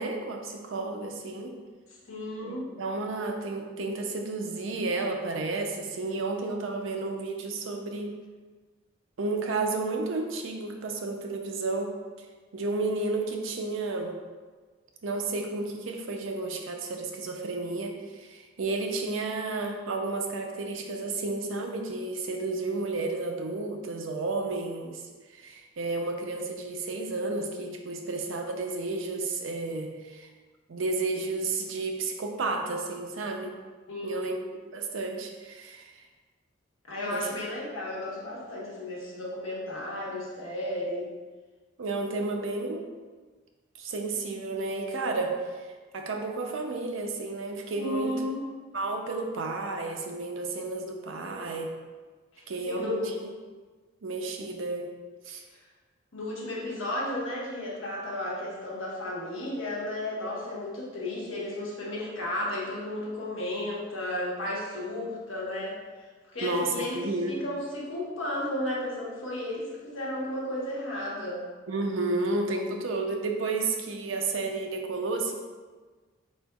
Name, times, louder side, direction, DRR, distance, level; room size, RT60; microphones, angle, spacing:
voice 1, 0.0-1.6 2.4-8.1 9.2-12.3 12.5-14.2 15.0-25.0 25.3-30.3 30.7-33.5 34.0-34.4 34.7-36.0 37.1-37.3 41.8-42.9 43.8-45.7 45.9-48.2 48.7-51.7 52.5-53.3 54.0-55.0 55.2-55.4 66.4-67.4 71.7-75.3, right 3 dB, 80° right, 3 dB, 0.5 m, -32 dB
voice 2, 2.1-2.7 33.9-34.3 36.9-41.1 47.8-48.5 52.3-53.2 56.1-65.8 66.3-71.4, left 1 dB, 85° left, -5 dB, 1.2 m, -33 dB
4.4 x 4.2 x 2.3 m, 1.4 s
head